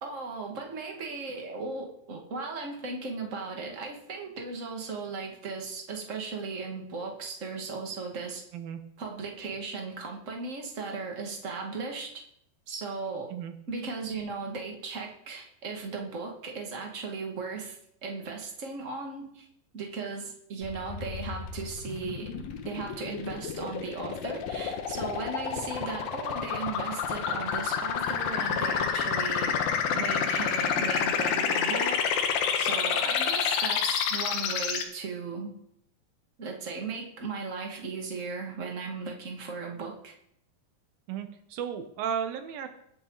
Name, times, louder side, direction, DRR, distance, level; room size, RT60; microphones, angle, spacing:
voice 1, 0.0-8.4 9.0-12.2 12.7-13.3 13.7-19.5 19.7-29.6 29.9-32.3 32.5-35.5 36.4-40.1, right 4 dB, 35° right, 1 dB, 1.3 m, -37 dB
sound 1, 20.6-34.8, left 7 dB, 70° left, 2.8 m, -29 dB
voice 2, 41.1-42.7, right 8 dB, 70° right, 7 dB, 2.7 m, -34 dB
21.5 x 9.0 x 4.0 m, 0.73 s
omnidirectional pair, 4.7 m